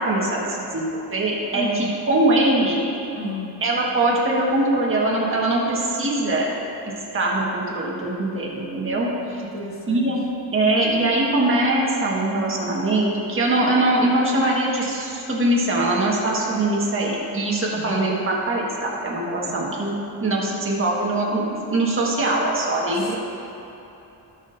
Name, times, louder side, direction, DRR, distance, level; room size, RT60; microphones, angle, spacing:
voice 1, 0.0-2.8 3.6-6.5 6.8-9.4 9.9-10.2 10.5-19.9 20.2-23.1, right 2 dB, 30° right, -4 dB, 1.7 m, -22 dB
voice 2, 1.5-1.9 3.1-3.5 9.4-10.1 17.7-18.0 19.4-19.7 22.8-23.1, left 2 dB, 30° left, -2 dB, 1.4 m, -33 dB
18.5 x 6.2 x 2.7 m, 3.0 s
cardioid pair, 165°, 43 cm